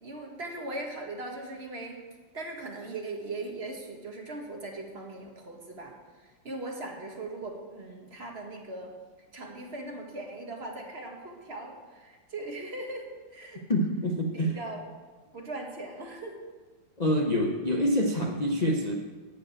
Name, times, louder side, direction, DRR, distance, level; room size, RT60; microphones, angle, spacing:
voice 1, 0.0-2.0 2.3-5.9 6.2-8.9 9.3-13.6 14.3-14.8 15.3-16.4, right 2 dB, 35° right, 1 dB, 1.5 m, -39 dB
voice 2, 13.7-14.6 17.0-18.9, equal, 85° left, 1 dB, 0.3 m, -26 dB
12.5 x 5.1 x 8.7 m, 1.3 s
omnidirectional pair, 2.2 m